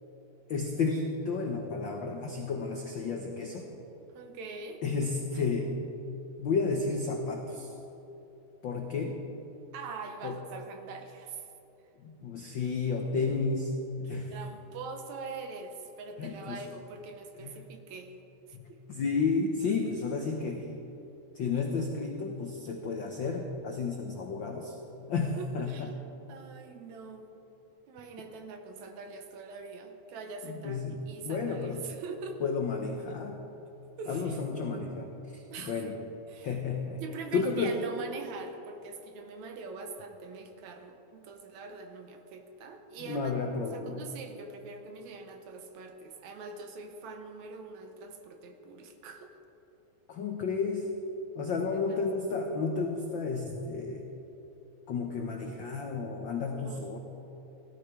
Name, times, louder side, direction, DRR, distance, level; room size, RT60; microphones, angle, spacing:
voice 1, 0.5-3.7 4.8-5.8 6.4-7.7 8.6-9.2 10.2-10.4 12.0-14.4 16.2-16.6 17.4-17.7 18.5-20.7 21.3-25.9 30.5-31.8 32.4-33.4 34.1-36.0 36.4-37.0 37.3-37.8 43.0-44.0 50.1-50.9 51.3-54.0 54.9-57.0, left 4 dB, 85° left, 2 dB, 1.0 m, -32 dB
voice 2, 4.1-4.8 9.7-11.5 14.0-18.1 18.5-18.8 25.4-25.9 26.3-27.3 27.9-32.5 34.0-34.4 35.5-36.0 36.3-36.5 37.0-43.3 43.7-49.4 51.7-52.0 56.6-56.8, right 4 dB, 75° right, 6 dB, 2.3 m, -43 dB
16.5 x 13.0 x 4.8 m, 3.0 s
omnidirectional pair, 3.4 m